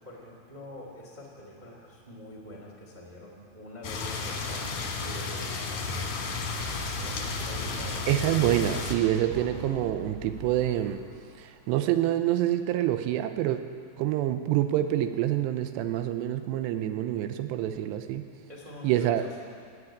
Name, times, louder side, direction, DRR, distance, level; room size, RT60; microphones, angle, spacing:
voice 1, 0.0-6.4 7.0-8.1 18.5-19.5, left 1 dB, 40° right, -3 dB, 0.6 m, -45 dB
sound 1, 3.8-8.9, left 4 dB, 55° left, 2.5 m, -33 dB
sound 2, 6.6-11.7, right 2 dB, 65° right, 3.5 m, -41 dB
voice 2, 8.1-11.0 11.4-13.6 14.0-18.3 18.8-19.2, right 12 dB, 80° right, 9 dB, 2.8 m, -26 dB
18.5 x 8.2 x 8.5 m, 2.1 s
omnidirectional pair, 5.2 m